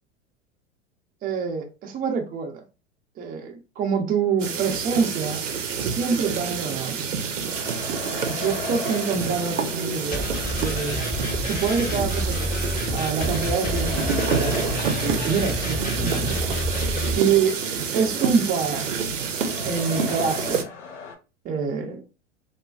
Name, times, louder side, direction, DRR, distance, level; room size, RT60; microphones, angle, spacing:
voice 1, 1.2-2.6 3.2-5.4 5.7-7.1 8.2-10.3 10.6-11.0 11.5-12.7 12.9-16.5 17.2-17.6 17.9-18.9 19.6-20.6 21.4-22.0, right 6 dB, 25° right, 0.5 m, -26 dB
sound 1, 4.4-20.6, right 6 dB, 90° right, 0.5 m, -28 dB
sound 2, 7.4-21.1, left 4 dB, 80° left, 0.7 m, -38 dB
sound 3, 10.1-17.2, left 1 dB, 25° left, 0.8 m, -28 dB
2.4 x 2.2 x 2.3 m
hypercardioid pair, 90°, 37 cm